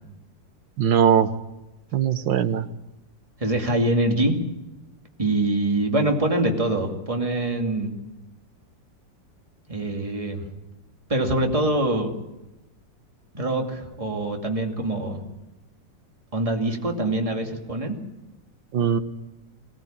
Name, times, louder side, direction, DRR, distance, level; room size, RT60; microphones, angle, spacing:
voice 1, 0.8-1.3 1.9-2.6 18.7-19.0, right 8 dB, 80° right, 12 dB, 1.8 m, -20 dB
voice 2, 3.4-4.4 5.2-7.9 9.7-10.5 11.1-12.1 13.3-15.2 16.3-17.9, right 1 dB, 15° right, 2 dB, 2.5 m, -24 dB
23.0 x 18.0 x 8.8 m, 0.99 s
omnidirectional pair, 2.0 m